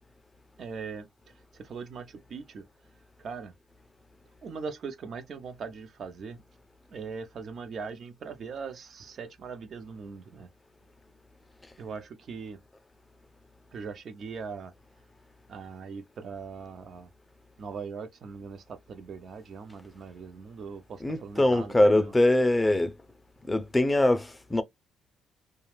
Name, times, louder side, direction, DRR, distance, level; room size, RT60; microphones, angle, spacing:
voice 1, 0.6-2.7 3.2-3.5 4.4-6.4 6.9-10.5 11.8-12.6 13.7-14.7 15.5-17.1 17.6-22.1, right 5 dB, 55° right, 0.6 m, -40 dB
voice 2, 21.0-22.9 23.5-24.6, left 1 dB, 15° left, 0.5 m, -23 dB
2.4 x 2.3 x 3.2 m
cardioid pair, 90°, 0 cm